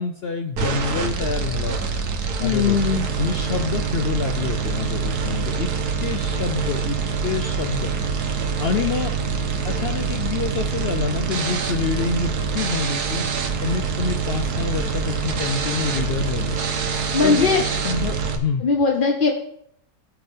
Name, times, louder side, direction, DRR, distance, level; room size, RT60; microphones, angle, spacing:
voice 1, 0.0-1.9 2.4-2.8 3.2-5.7 6.0-7.9 8.6-9.1 9.6-13.3 13.6-16.6 17.2-18.7, left 5 dB, 80° left, 7 dB, 0.5 m, -27 dB
sound 1, 0.6-18.4, right 5 dB, 70° right, 1.6 m, -25 dB
voice 2, 2.4-3.0 17.1-17.6 18.6-19.3, left 5 dB, 45° left, 2 dB, 0.8 m, -19 dB
16.5 x 5.9 x 3.6 m, 0.69 s
omnidirectional pair, 1.7 m